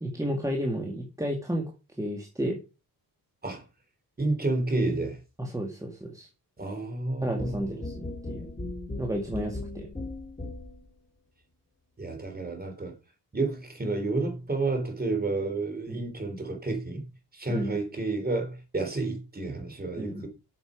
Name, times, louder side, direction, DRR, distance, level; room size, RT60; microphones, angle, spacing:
voice 1, 0.0-1.7 2.0-2.6 5.4-6.3 7.2-8.5 9.0-9.9 15.9-16.1 17.5-17.8 20.0-20.3, equal, 10° right, 2.0 m, -32 dB
voice 2, 4.2-5.2 6.6-7.5 12.0-13.0 13.3-17.0 17.3-20.3, right 2 dB, 25° right, 3.6 m, -30 dB
sound 1, 7.4-10.9, left 2 dB, 15° left, 3.6 m, -37 dB
8.6 x 6.9 x 5.2 m
cardioid pair, 100°, 39 cm